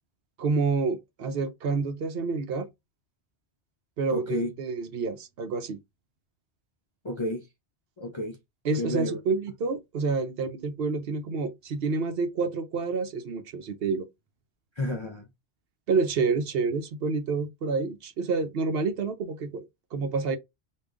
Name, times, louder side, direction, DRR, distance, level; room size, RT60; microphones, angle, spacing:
voice 1, 0.4-2.7 4.0-5.8 8.6-14.1 15.9-20.4, right 4 dB, 65° right, 0.8 m, -28 dB
voice 2, 4.1-4.5 7.0-7.5 8.0-8.4 8.8-9.2 14.8-15.3, left 1 dB, 40° left, 0.4 m, -31 dB
3.5 x 2.5 x 3.6 m
omnidirectional pair, 1.2 m